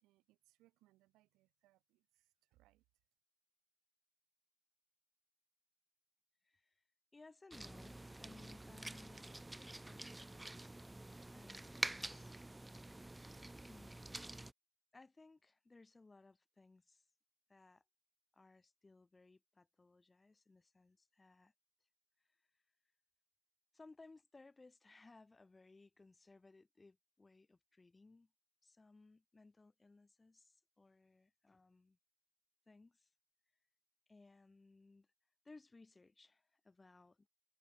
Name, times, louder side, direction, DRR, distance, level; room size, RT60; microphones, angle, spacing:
voice 1, 0.0-2.8, right 18 dB, 80° right, 3.4 m, -74 dB
voice 2, 6.4-6.8 7.1-12.3 13.7-14.0 14.9-17.1 17.5-17.8 18.3-21.5 22.2-22.6 23.7-28.3 28.6-32.0 32.7-33.1 34.1-35.1 35.4-37.3, left 3 dB, 15° left, 2.1 m, -63 dB
sound 1, 7.5-14.5, right 2 dB, 10° right, 0.8 m, -47 dB
cardioid pair, 105°, 0 cm